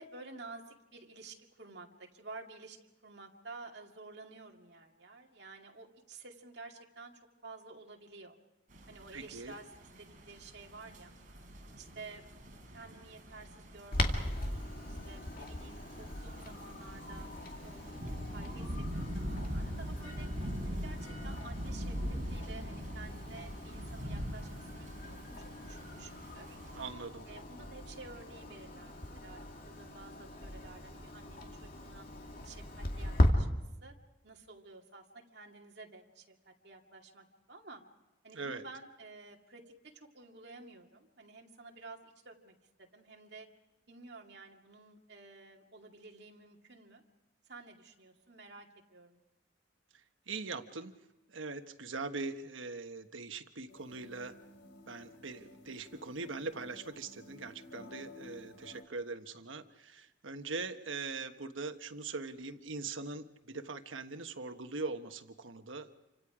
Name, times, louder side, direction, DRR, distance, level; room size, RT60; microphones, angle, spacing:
voice 1, 0.0-2.8 3.0-7.1 7.4-8.4 8.9-9.7 10.0-11.1 11.8-17.3 17.6-20.3 20.7-22.0 22.3-25.3 25.6-26.6 27.3-32.1 32.4-33.9 34.2-37.8 38.2-39.6 39.9-43.5 43.9-47.0 47.5-49.2, right 3 dB, 60° right, 1 dB, 2.4 m, -52 dB
sound 1, 8.7-26.9, equal, 45° right, 4.8 m, -43 dB
voice 2, 9.1-9.5 26.7-27.3 38.3-38.6 50.3-50.9 51.3-54.4 54.9-65.9, right 3 dB, 85° right, 8 dB, 1.3 m, -41 dB
Clock, 13.9-33.3, left 1 dB, 50° left, 2.3 m, -39 dB
sound 2, 53.7-58.8, left 2 dB, 75° left, 3.4 m, -53 dB
28.5 x 25.5 x 5.0 m, 1.0 s
head